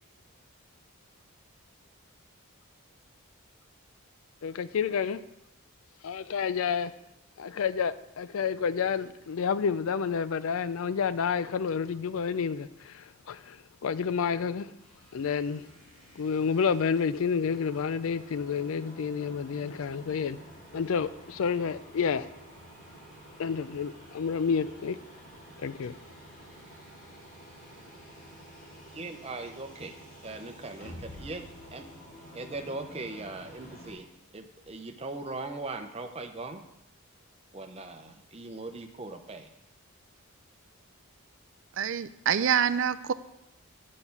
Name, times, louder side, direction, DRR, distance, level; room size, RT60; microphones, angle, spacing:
voice 1, 4.4-5.2 6.0-6.9 7.4-13.6 13.8-14.7 15.1-15.6 16.2-20.4 20.7-22.3 23.4-25.0 25.6-26.0, left 6 dB, 70° left, 15 dB, 0.4 m, -29 dB
sound 1, 14.8-33.9, equal, 35° left, 2.5 m, -50 dB
voice 2, 28.9-30.0 30.2-31.9 32.3-34.1 34.3-36.6 37.5-39.5, right 2 dB, 25° right, 6 dB, 0.7 m, -39 dB
voice 3, 41.8-43.1, right 8 dB, 55° right, 15 dB, 0.4 m, -26 dB
8.3 x 5.3 x 7.1 m, 0.87 s
head